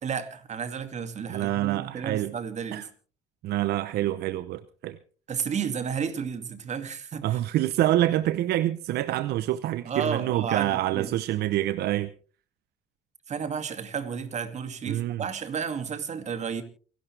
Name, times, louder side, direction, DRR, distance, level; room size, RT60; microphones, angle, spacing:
voice 1, 0.0-2.9 5.3-7.4 9.8-11.1 13.3-16.6, right 7 dB, 45° right, 2.4 m, -32 dB
voice 2, 1.3-2.3 2.7-2.9 3.4-5.0 7.2-12.1 14.9-15.2, right 14 dB, 75° right, 0.8 m, -26 dB
28.5 x 11.5 x 3.4 m
cardioid pair, 110°, 17 cm